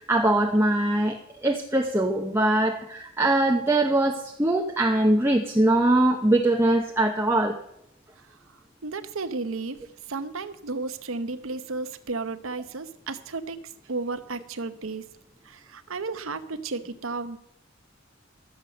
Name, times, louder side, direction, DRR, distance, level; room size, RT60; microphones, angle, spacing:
voice 1, 0.1-7.6, right 1 dB, 10° right, 1 dB, 0.8 m, -22 dB
voice 2, 8.8-9.8 10.1-13.6 13.9-15.0 15.5-17.4, right 3 dB, 80° right, 10 dB, 0.9 m, -33 dB
13.0 x 8.1 x 6.7 m, 0.76 s
head